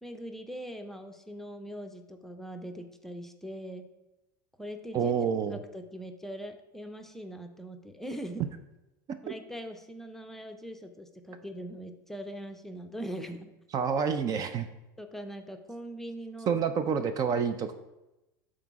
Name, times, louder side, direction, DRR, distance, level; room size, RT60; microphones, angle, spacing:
voice 1, 0.0-3.8 4.6-5.1 5.5-8.4 9.2-13.5 15.0-16.6, equal, 5° left, 5 dB, 0.6 m, -41 dB
voice 2, 4.9-5.6 9.3-9.4 13.7-14.7 16.5-17.7, right 6 dB, 35° right, 9 dB, 0.5 m, -28 dB
7.8 x 3.8 x 4.7 m, 0.97 s
supercardioid pair, 110°, 10 cm